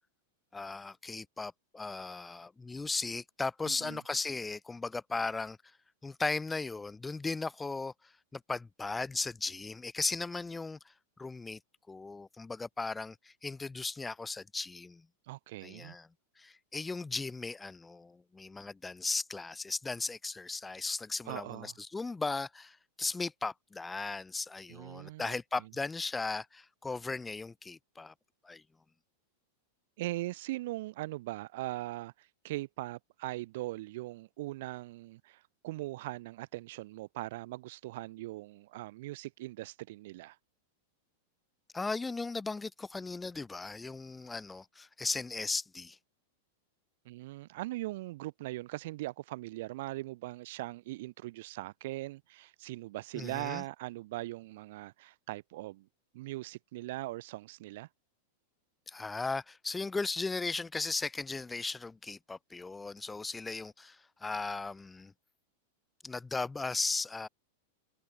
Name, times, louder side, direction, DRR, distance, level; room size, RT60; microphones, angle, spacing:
voice 1, 0.5-5.6 6.0-7.9 8.3-10.8 11.2-11.6 11.9-15.0 15.6-16.1 16.4-28.1 28.4-28.6 41.7-46.0 53.1-53.6 58.9-65.1 66.0-67.3, left 3 dB, 5° left, 1.3 m, -37 dB
voice 2, 3.6-4.0 15.3-15.9 21.3-21.7 24.7-25.4 30.0-40.4 47.0-55.9 56.1-57.9, right 18 dB, 55° right, 1.1 m, -40 dB
supercardioid pair, 170°, 0 cm